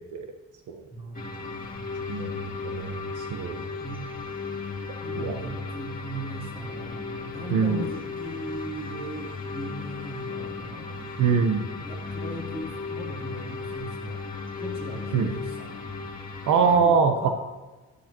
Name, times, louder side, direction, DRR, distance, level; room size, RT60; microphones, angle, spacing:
voice 1, 0.9-2.0 3.8-4.1 5.0-11.1 11.8-14.3 14.6-15.8 16.7-17.3, right 1 dB, 20° right, -2 dB, 3.5 m, -39 dB
sound 1, 1.1-16.8, left 4 dB, 30° left, 2.0 m, -35 dB
voice 2, 2.1-3.6 5.1-5.5 7.5-7.8 11.2-11.7 15.1-15.3 16.5-17.3, right 5 dB, 80° right, 6 dB, 1.0 m, -23 dB
12.0 x 12.0 x 3.0 m, 1.2 s
cardioid pair, 90°, 30 cm